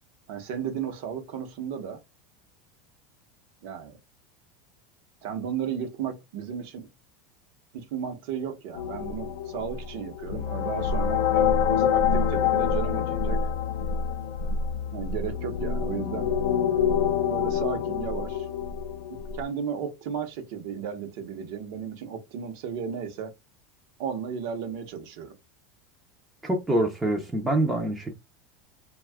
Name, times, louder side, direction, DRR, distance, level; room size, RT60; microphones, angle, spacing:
voice 1, 0.3-2.0 3.6-4.0 5.2-6.9 7.7-13.4 14.9-16.3 17.3-18.5 19.1-23.3 24.0-25.3, right 7 dB, 60° right, 0.8 m, -34 dB
sound 1, 8.8-19.4, left 7 dB, 80° left, 0.5 m, -26 dB
voice 2, 26.4-28.2, right 1 dB, 5° right, 0.5 m, -25 dB
2.6 x 2.3 x 3.4 m
supercardioid pair, 160°, 0 cm